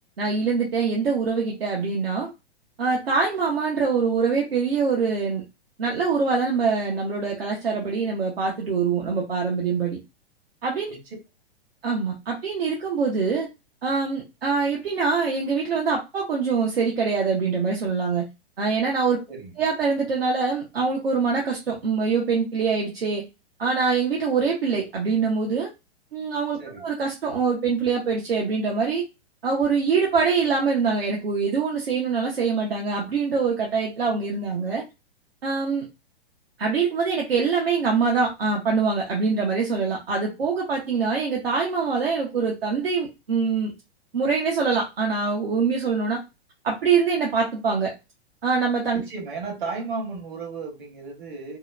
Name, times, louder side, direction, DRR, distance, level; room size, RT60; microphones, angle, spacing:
voice 1, 0.2-2.3 2.8-5.4 5.8-10.0 10.6-10.9 11.8-13.5 13.8-18.3 18.6-19.2 19.6-23.2 23.6-25.7 26.1-29.0 29.4-34.8 35.4-35.9 36.6-43.7 44.1-46.2 46.6-47.9 48.4-49.0, right 5 dB, 65° right, -1 dB, 0.7 m, -24 dB
voice 2, 48.9-51.6, right 4 dB, 50° right, 0 dB, 1.2 m, -34 dB
2.8 x 2.0 x 2.3 m, 0.26 s
figure-of-eight pair, 110°, 31 cm